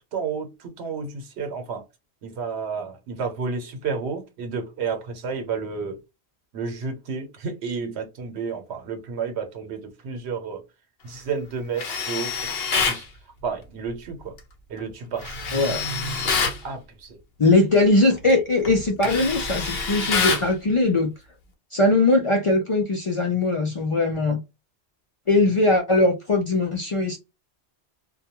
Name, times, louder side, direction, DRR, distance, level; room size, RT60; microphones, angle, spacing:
voice 1, 0.1-1.8 2.2-6.0 6.5-10.6 11.0-13.1 13.4-14.3 14.7-15.4 16.1-17.2, right 5 dB, 85° right, 1.0 m, -31 dB
Tools, 11.8-13.0 15.2-16.6 18.1-18.3 18.6-20.5, left 4 dB, 70° left, 0.9 m, -26 dB
voice 2, 15.5-15.8 17.4-21.1 21.7-24.4 25.3-27.2, left 2 dB, 50° left, 0.3 m, -20 dB
2.2 x 2.2 x 2.9 m
omnidirectional pair, 1.1 m